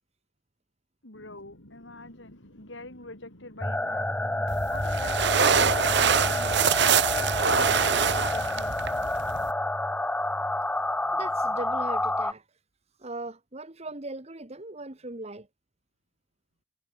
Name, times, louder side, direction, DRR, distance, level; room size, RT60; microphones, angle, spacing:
voice 1, 1.0-4.1 4.5-6.8 7.6-8.7 11.0-11.3, left 2 dB, 60° left, 4.2 m, -44 dB
sound 1, 1.1-9.1, left 1 dB, 80° left, 6.0 m, -53 dB
sound 2, 3.6-12.3, left 1 dB, 5° left, 0.5 m, -29 dB
sound 3, 4.5-9.5, right 6 dB, 55° right, 1.3 m, -25 dB
voice 2, 11.1-12.4 13.0-15.5, right 2 dB, 30° right, 1.4 m, -39 dB
head